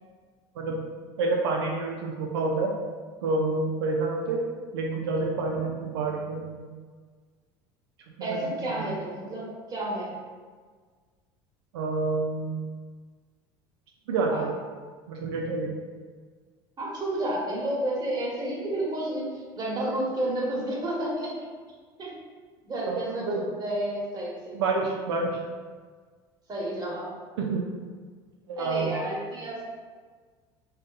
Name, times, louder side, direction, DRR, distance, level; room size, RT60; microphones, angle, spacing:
voice 1, 1.2-2.7 3.2-4.4 4.7-6.7 8.3-8.5 8.8-8.9 11.7-12.6 14.1-14.5 15.1-15.7 22.9-23.4 24.6-25.4 27.4-27.6 28.5-28.9, right 3 dB, 85° right, -1 dB, 0.4 m, -28 dB
voice 2, 8.2-10.1 14.3-14.5 16.8-21.3 22.0-22.1 22.6-23.3 23.5-24.6 26.5-27.1 28.6-29.6, right 1 dB, 30° right, -4 dB, 1.1 m, -31 dB
2.6 x 2.4 x 3.5 m, 1.5 s
hypercardioid pair, 85°, 13 cm